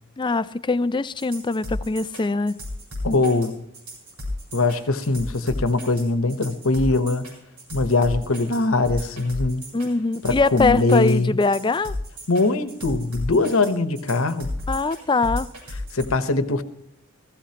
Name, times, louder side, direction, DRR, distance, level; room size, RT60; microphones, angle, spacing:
voice 1, 0.2-2.6 9.7-11.9 14.7-15.5, left 3 dB, 20° left, 0.4 m, -22 dB
sound 1, 1.2-16.1, left 1 dB, 85° right, 6.6 m, -34 dB
voice 2, 3.0-3.5 4.5-7.2 7.7-9.6 10.2-11.4 12.3-14.5 15.9-16.6, left 3 dB, 65° left, 1.0 m, -22 dB
16.5 x 15.0 x 2.9 m
head